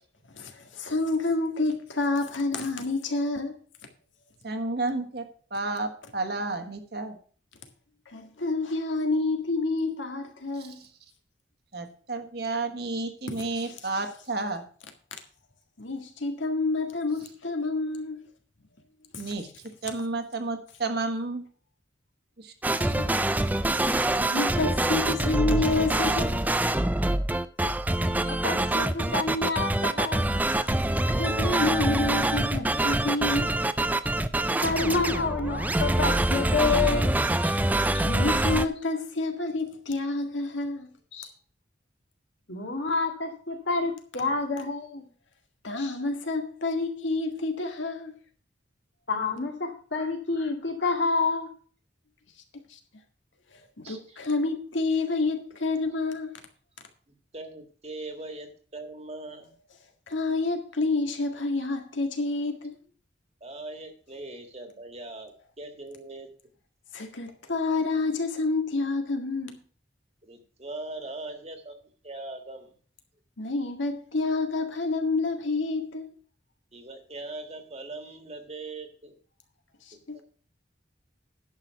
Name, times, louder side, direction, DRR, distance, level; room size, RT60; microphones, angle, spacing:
voice 1, 0.4-3.5 8.1-10.8 15.8-18.3 19.1-19.2 23.0-23.1 23.9-26.4 31.1-33.6 38.0-40.9 45.6-48.1 52.7-52.8 53.9-56.3 60.1-62.8 66.9-69.6 73.4-76.1 79.9-80.2, left 3 dB, 90° left, 1.9 m, -28 dB
voice 2, 4.4-7.2 10.5-10.9 11.7-14.6 19.2-19.5 19.8-21.4 22.4-22.5 22.8-22.9, right 3 dB, 55° right, 1.5 m, -31 dB
sound 1, 22.6-38.7, right 1 dB, 10° right, 0.4 m, -25 dB
voice 3, 28.1-30.3 34.6-37.6 37.9-38.1 41.1-41.3 42.5-45.1 45.8-46.0 49.1-51.5, left 4 dB, 70° left, 2.4 m, -28 dB
voice 4, 53.8-54.2 57.3-59.5 63.4-65.3 65.6-66.3 70.2-71.8 72.0-72.7 76.7-79.2 80.1-80.2, right 2 dB, 35° right, 1.7 m, -40 dB
10.5 x 6.0 x 5.8 m
head